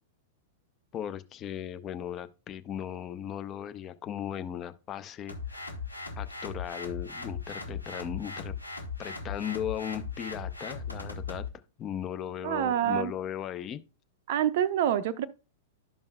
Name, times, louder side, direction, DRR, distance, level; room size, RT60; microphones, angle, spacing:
voice 1, 0.9-5.7 6.2-8.5 9.0-11.4 11.8-13.8, left 10 dB, 30° left, 0.6 m, -37 dB
sound 1, 5.3-11.5, left 4 dB, 90° left, 1.2 m, -38 dB
voice 2, 12.4-13.1 14.3-15.3, right 10 dB, 50° right, 0.5 m, -26 dB
12.5 x 5.4 x 2.2 m
figure-of-eight pair, 100°, 0 cm